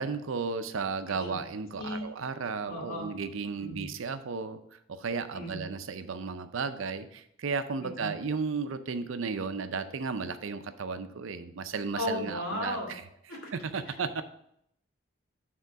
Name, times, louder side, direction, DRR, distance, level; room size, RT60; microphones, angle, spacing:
voice 1, 0.0-4.6 4.9-13.0 13.5-14.2, right 5 dB, 75° right, 10 dB, 0.5 m, -34 dB
voice 2, 2.7-3.1 3.6-3.9 5.3-5.6 7.8-8.1 12.0-12.9 13.3-13.4, left 1 dB, 90° left, -2 dB, 2.4 m, -35 dB
6.7 x 3.7 x 5.9 m, 0.74 s
head